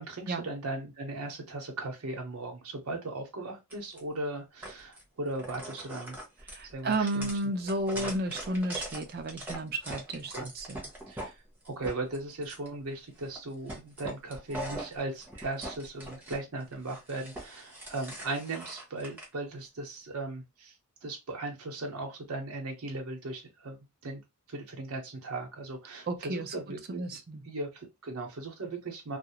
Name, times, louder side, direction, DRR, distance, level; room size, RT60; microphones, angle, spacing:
voice 1, 0.0-6.2 6.6-7.3 7.9-8.1 10.3-10.5 11.1-20.7 21.0-24.2 24.5-27.0 27.4-29.2, right 2 dB, 75° right, 0.8 m, -38 dB
sound 1, 3.7-4.0 4.6-5.0 5.3-11.3 11.6-12.7 13.2-13.4 13.7-16.4 16.7-19.3, right 1 dB, 10° right, 0.8 m, -41 dB
voice 2, 6.5-10.9 26.1-26.5 26.9-27.4, right 2 dB, 45° right, 0.5 m, -32 dB
2.4 x 2.0 x 2.8 m
head